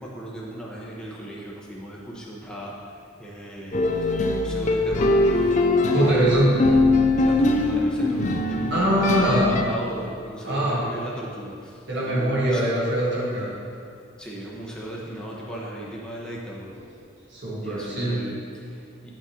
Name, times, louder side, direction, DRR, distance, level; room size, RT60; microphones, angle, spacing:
voice 1, 0.0-5.6 6.0-6.3 7.2-12.8 13.3-13.5 14.2-16.8 17.6-19.1, right 1 dB, 5° left, -5 dB, 0.9 m, -37 dB
sound 1, 3.7-9.6, left 2 dB, 35° left, 0.4 m, -21 dB
voice 2, 5.9-6.7 8.7-9.6 10.4-10.9 11.9-13.5 17.3-18.3, right 1 dB, 60° right, -5 dB, 1.3 m, -23 dB
9.7 x 6.0 x 2.8 m, 2.4 s
head